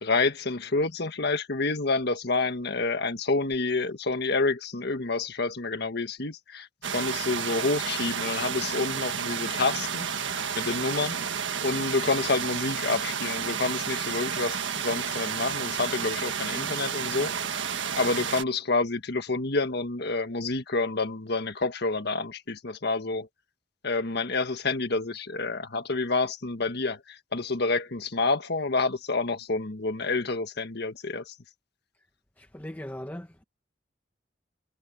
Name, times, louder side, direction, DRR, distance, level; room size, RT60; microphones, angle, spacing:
voice 1, 0.0-6.7 6.9-10.1 10.6-17.3 17.9-23.3 23.8-31.3, left 3 dB, 60° left, 1.5 m, -28 dB
sound 1, 6.8-18.4, right 7 dB, 80° right, 1.5 m, -31 dB
voice 2, 32.4-33.4, left 1 dB, 10° left, 1.0 m, -39 dB
head